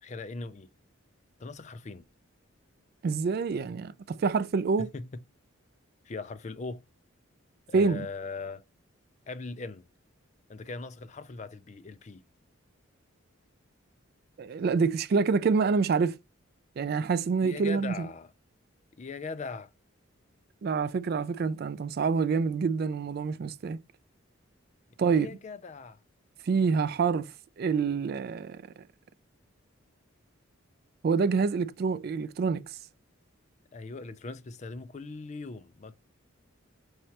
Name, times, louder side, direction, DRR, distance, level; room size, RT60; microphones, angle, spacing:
voice 1, 0.0-0.7 1.4-2.0 4.8-5.2 6.0-6.8 7.7-8.6 9.3-9.9 10.5-12.2 17.4-18.3 19.0-19.7 25.0-26.0 33.7-35.9, left 3 dB, 35° left, 0.4 m, -40 dB
voice 2, 3.0-4.9 7.7-8.1 14.4-16.2 16.8-18.1 20.6-23.8 25.0-25.3 26.4-27.3 27.6-28.6 31.0-32.8, right 5 dB, 50° right, 0.3 m, -27 dB
5.7 x 3.2 x 2.8 m
head